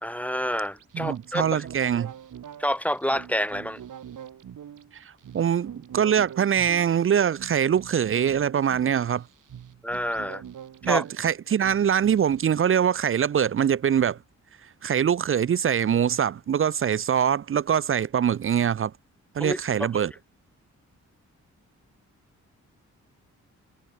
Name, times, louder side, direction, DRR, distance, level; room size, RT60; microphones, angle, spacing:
voice 1, 0.0-1.6 2.6-3.8 9.8-10.4 10.8-11.0 19.4-19.9, equal, 5° left, 1.2 m, -28 dB
sound 1, 0.7-12.4, right 9 dB, 85° right, 4.4 m, -44 dB
voice 2, 0.9-2.1 4.9-5.0 5.3-9.2 10.9-14.2 14.8-18.9 19.3-20.1, right 8 dB, 45° right, 0.5 m, -23 dB
cardioid pair, 65°, 30 cm